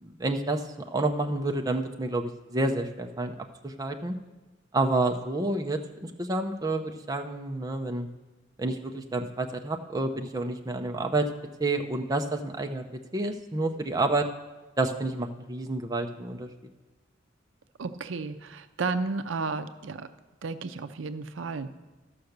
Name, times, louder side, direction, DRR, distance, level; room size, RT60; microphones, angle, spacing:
voice 1, 0.0-4.2 4.7-8.1 8.6-11.3 11.6-12.9 13.1-14.3 14.8-16.5, right 2 dB, 20° right, 4 dB, 0.6 m, -29 dB
voice 2, 17.8-20.1 20.4-21.7, right 4 dB, 75° right, 11 dB, 0.5 m, -33 dB
12.5 x 5.8 x 6.6 m, 1.2 s
head